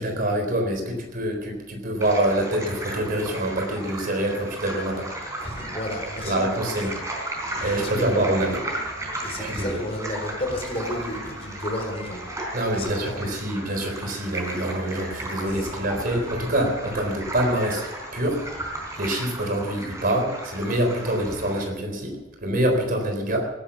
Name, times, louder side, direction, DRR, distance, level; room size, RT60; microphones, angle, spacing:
voice 1, 0.0-5.1 6.2-7.0 7.6-8.6 9.4-9.8 12.5-17.9 18.1-18.4 19.0-23.5, right 1 dB, 50° right, 4 dB, 3.9 m, -25 dB
sound 1, 2.0-21.6, right 1 dB, 15° right, 4.1 m, -35 dB
voice 2, 5.4-6.5 7.5-8.2 9.2-12.3 12.7-13.3 15.5-15.7, left 1 dB, 30° left, 3 dB, 4.0 m, -32 dB
18.0 x 10.5 x 7.1 m, 1.0 s
head